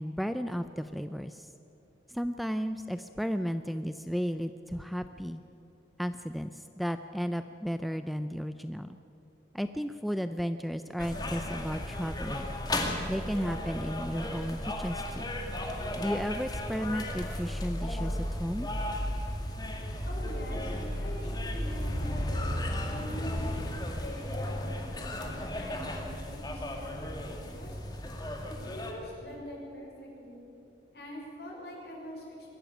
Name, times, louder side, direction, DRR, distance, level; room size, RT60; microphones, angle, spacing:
voice 1, 0.0-1.5 2.1-5.4 6.0-9.0 9.5-12.5 13.1-15.3 16.0-18.7, equal, ahead, 9 dB, 0.4 m, -34 dB
sound 1, 11.0-28.9, left 1 dB, 20° left, 2.1 m, -34 dB
voice 2, 20.1-23.5 23.9-27.8 28.4-30.5 30.9-32.6, equal, 65° left, -2 dB, 6.0 m, -44 dB
22.0 x 14.5 x 9.1 m, 2.9 s
head